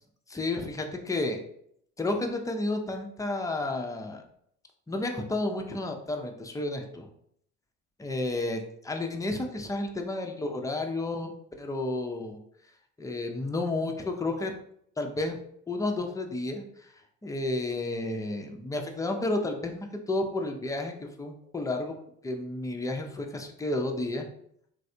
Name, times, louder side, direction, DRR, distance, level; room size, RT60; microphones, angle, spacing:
voice 1, 0.3-1.4 2.0-4.2 4.9-7.1 8.0-12.4 13.0-14.5 15.0-15.4 15.7-16.9 17.2-22.0 22.2-24.2, left 2 dB, 10° left, 3 dB, 0.4 m, -31 dB
3.1 x 2.6 x 2.6 m, 0.69 s
hypercardioid pair, 60°, 39 cm